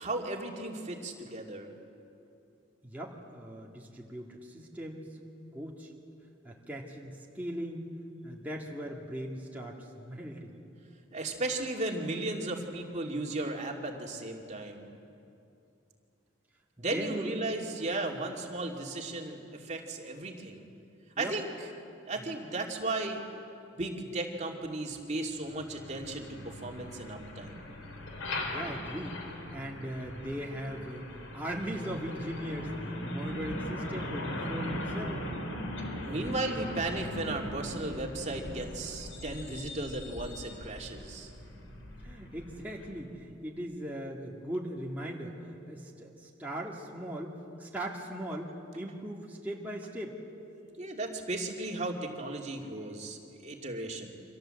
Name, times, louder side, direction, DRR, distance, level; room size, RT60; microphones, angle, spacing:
voice 1, 0.0-1.7 11.1-14.9 16.8-20.6 21.2-21.5 22.1-23.2 23.7-27.6 36.0-41.3 50.8-54.1, right 2 dB, 35° right, 1 dB, 2.6 m, -35 dB
voice 2, 2.8-5.1 5.5-5.9 6.4-7.9 8.2-10.5 16.8-17.4 21.2-21.4 28.4-29.2 29.5-35.3 41.5-41.6 42.0-50.2, equal, 10° right, -3 dB, 2.3 m, -39 dB
Truck, 25.4-43.0, left 1 dB, 90° left, 4.1 m, -40 dB
29.0 x 25.5 x 7.8 m, 2.7 s
head